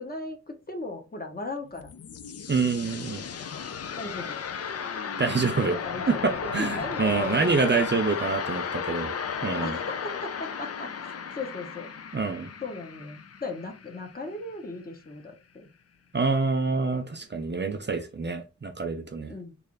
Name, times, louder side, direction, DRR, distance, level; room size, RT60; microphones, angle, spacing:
voice 1, 0.0-1.9 4.0-4.4 5.4-7.7 9.5-11.9 12.6-15.7 19.3-19.5, left 2 dB, 30° left, 4 dB, 0.8 m, -37 dB
sound 1, 1.6-14.4, left 6 dB, 55° left, 0.4 m, -35 dB
voice 2, 2.5-3.3 5.2-5.7 6.1-6.2 6.5-9.1 9.4-9.8 12.1-12.5 16.1-19.3, right 4 dB, 35° right, 6 dB, 0.6 m, -26 dB
3.3 x 2.5 x 3.7 m, 0.29 s
wide cardioid pair, 85°, 31 cm